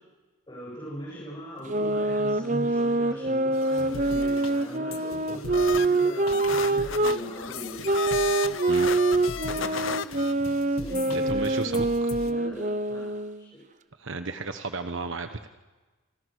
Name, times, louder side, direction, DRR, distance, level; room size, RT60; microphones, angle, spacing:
voice 1, 0.5-7.8 9.3-10.0 10.7-11.6 12.2-13.6, equal, 20° left, -5 dB, 7.6 m, -40 dB
sound 1, 1.7-7.2 7.8-13.4, right 2 dB, 35° right, 0.8 m, -25 dB
sound 2, 3.5-12.3, left 3 dB, 80° left, 1.6 m, -41 dB
sound 3, 3.7-4.7 5.5-10.3, left 6 dB, 60° left, 0.8 m, -34 dB
voice 2, 11.1-12.1 14.0-15.5, right 3 dB, 60° right, 9 dB, 1.2 m, -34 dB
29.5 x 25.5 x 6.6 m, 1.2 s
head